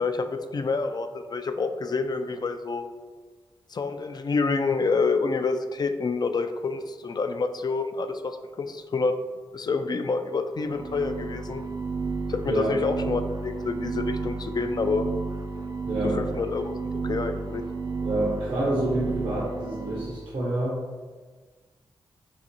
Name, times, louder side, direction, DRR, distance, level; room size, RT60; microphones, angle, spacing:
voice 1, 0.0-2.9 3.7-9.2 9.5-11.6 12.3-15.1 16.1-17.6, left 4 dB, 45° left, 8 dB, 0.4 m, -28 dB
sound 1, 10.6-20.3, right 4 dB, 45° right, 0.4 m, -32 dB
voice 2, 12.4-12.8 15.9-16.2 18.0-20.9, right 1 dB, 70° right, -7 dB, 0.9 m, -28 dB
4.8 x 2.5 x 2.7 m, 1.4 s
cardioid pair, 45°, 10 cm